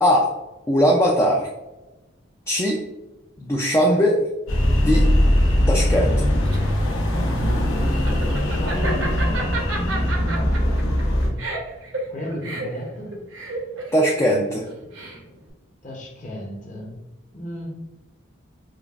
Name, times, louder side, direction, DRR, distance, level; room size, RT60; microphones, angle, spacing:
voice 1, 0.0-0.3 0.7-1.5 2.5-2.8 3.4-4.3 4.7-5.1 5.7-6.3 13.9-14.7, equal, 15° left, -1 dB, 0.3 m, -19 dB
sound 1, 4.5-11.3, left 1 dB, 85° left, 0.9 m, -20 dB
Laughter, 6.4-15.5, right 2 dB, 70° right, 0.9 m, -32 dB
voice 2, 8.2-11.5 12.1-13.2 15.8-17.0 17.3-17.7, left 1 dB, 35° left, -2 dB, 0.7 m, -34 dB
5.1 x 2.4 x 2.4 m, 1.1 s
head